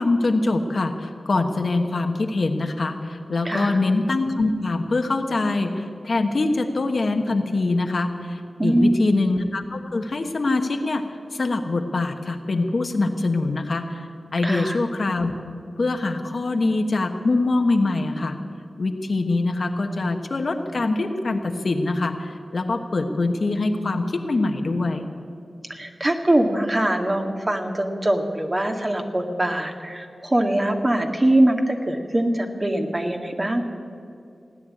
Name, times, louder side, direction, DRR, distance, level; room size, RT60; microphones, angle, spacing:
voice 1, 0.0-11.0 11.3-14.0 14.3-15.3 15.8-18.4 18.8-25.1, left 2 dB, 65° left, 5 dB, 1.2 m, -23 dB
voice 2, 3.5-3.8 8.6-9.0 14.4-14.8 25.7-33.6, right 1 dB, 35° right, 4 dB, 1.8 m, -22 dB
17.0 x 9.7 x 8.6 m, 2.4 s
cardioid pair, 45°, 0 cm